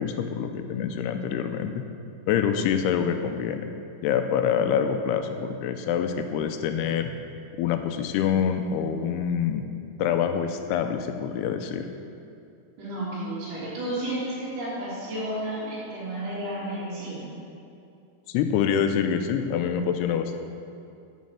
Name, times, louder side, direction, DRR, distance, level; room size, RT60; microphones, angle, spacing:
voice 1, 0.0-1.8 2.3-3.7 4.0-7.1 7.6-9.6 10.0-11.9 18.3-20.4, left 8 dB, 80° left, 7 dB, 2.6 m, -26 dB
voice 2, 12.8-17.3, right 1 dB, 65° right, -12 dB, 5.1 m, -32 dB
9.4 x 7.5 x 7.5 m, 2.5 s
omnidirectional pair, 4.8 m